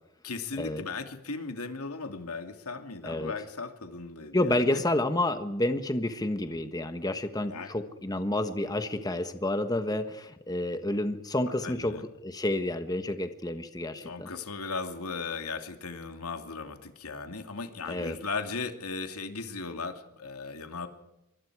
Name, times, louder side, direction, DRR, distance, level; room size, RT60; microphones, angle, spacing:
voice 1, 0.2-4.8 7.5-7.7 11.6-12.0 14.0-20.9, left 4 dB, 90° left, 6 dB, 2.6 m, -37 dB
voice 2, 4.3-11.9 12.2-14.3 17.9-18.1, left 1 dB, 15° left, 8 dB, 1.4 m, -29 dB
25.5 x 23.5 x 4.9 m, 0.89 s
head